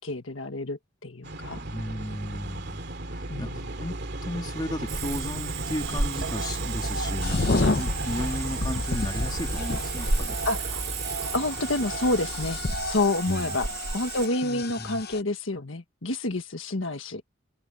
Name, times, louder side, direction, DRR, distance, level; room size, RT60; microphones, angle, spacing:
voice 1, 0.0-1.7 3.3-3.7 7.6-7.8 10.4-10.8 11.2-13.7 13.9-17.2, left 2 dB, 70° left, 1.6 m, -29 dB
sound 1, 1.2-12.7, right 1 dB, 55° right, 2.7 m, -34 dB
voice 2, 1.6-2.8 3.1-10.4 13.3-13.5 14.4-15.0, left 1 dB, 20° left, 3.4 m, -35 dB
Cricket / Frog, 4.9-14.3, right 4 dB, 70° right, 1.7 m, -33 dB
sound 2, 7.2-15.2, left 3 dB, 50° left, 0.8 m, -32 dB
head